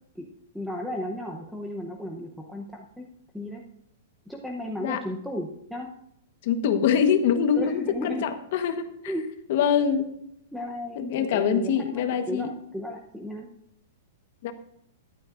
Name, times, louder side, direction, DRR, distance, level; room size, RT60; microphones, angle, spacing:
voice 1, 0.5-3.0 3.3-3.6 4.3-5.9 7.5-8.3 9.1-9.2 10.5-13.5, left 1 dB, ahead, -1 dB, 0.8 m, -34 dB
voice 2, 6.4-8.9 9.5-10.1 11.0-12.5 14.4-14.5, left 7 dB, 45° left, 8 dB, 1.2 m, -24 dB
13.5 x 11.5 x 2.5 m, 0.75 s
supercardioid pair, 170°, 0 cm